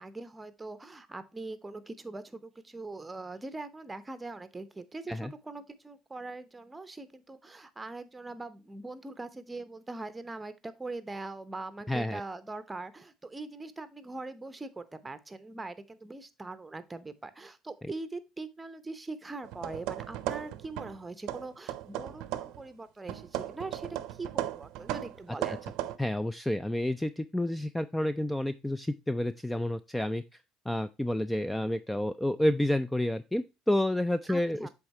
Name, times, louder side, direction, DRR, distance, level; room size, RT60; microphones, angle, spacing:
voice 1, 0.0-25.6 34.3-34.7, right 3 dB, 15° right, 13 dB, 0.8 m, -42 dB
voice 2, 11.9-12.2 17.8-17.9 25.5-25.6 26.0-30.2 30.7-34.7, left 1 dB, 5° left, 13 dB, 0.3 m, -29 dB
sound 1, 19.4-21.0 21.3-22.7 23.1-26.0, right 14 dB, 75° right, 0.6 m, -36 dB
7.9 x 3.6 x 4.2 m, 0.27 s
supercardioid pair, 85°, 0 cm